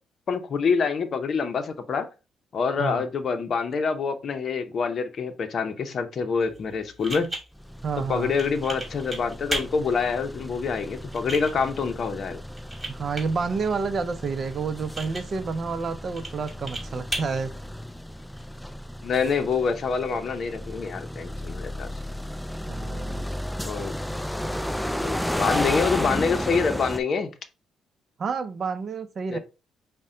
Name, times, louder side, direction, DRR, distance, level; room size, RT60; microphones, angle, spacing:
voice 1, 0.3-2.1 2.5-7.3 8.1-12.4 19.0-21.9 23.6-24.0 25.0-27.3 29.3-29.4, left 5 dB, 55° left, 0.6 m, -26 dB
sound 1, 6.4-18.4, right 1 dB, 15° right, 2.0 m, -38 dB
sound 2, 7.6-27.0, left 1 dB, 5° left, 0.3 m, -33 dB
voice 2, 7.8-8.3 12.9-17.5 22.7-23.3 25.4-25.5 28.2-29.4, right 5 dB, 45° right, 0.5 m, -29 dB
5.3 x 2.2 x 3.7 m
cardioid pair, 90°, 0 cm